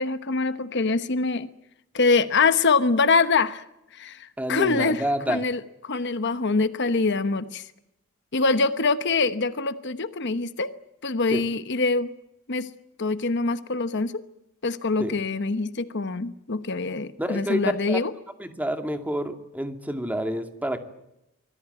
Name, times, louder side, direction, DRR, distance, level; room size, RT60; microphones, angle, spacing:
voice 1, 0.0-1.5 1.9-3.6 3.9-7.7 8.3-10.7 11.0-12.1 12.5-12.7 13.0-14.2 14.6-18.1, left 3 dB, 55° left, 12 dB, 1.1 m, -24 dB
voice 2, 4.4-5.4 11.3-11.4 15.0-15.1 17.2-18.0 18.4-20.8, equal, 5° right, 7 dB, 2.2 m, -28 dB
25.5 x 19.0 x 9.3 m, 0.86 s
head